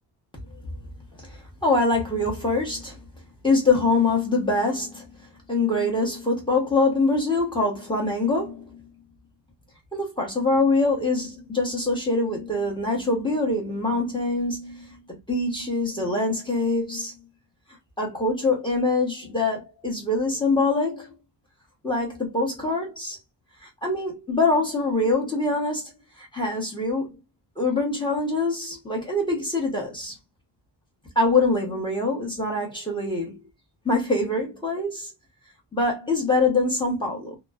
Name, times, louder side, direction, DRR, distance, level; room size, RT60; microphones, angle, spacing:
voice 1, 1.1-3.0 3.4-5.1 5.5-8.8 9.9-15.0 15.3-17.1 18.0-21.1 21.8-23.2 23.8-25.9 26.2-27.2 27.6-30.1 31.1-33.4 33.8-35.1 35.7-37.4, left 3 dB, 10° left, 1.0 m, -24 dB
3.0 x 2.0 x 2.3 m
wide cardioid pair, 165°, 42 cm